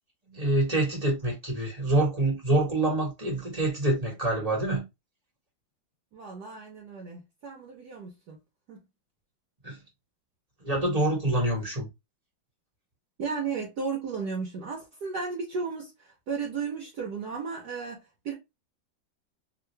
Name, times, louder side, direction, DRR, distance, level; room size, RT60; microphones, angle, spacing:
voice 1, 0.3-4.8 9.6-9.8 10.6-11.9, right 2 dB, 20° right, 1.2 m, -26 dB
voice 2, 6.1-8.4 8.7-8.8 13.2-15.9 16.3-18.3, right 5 dB, 60° right, 1.3 m, -34 dB
3.8 x 2.4 x 3.1 m
omnidirectional pair, 2.2 m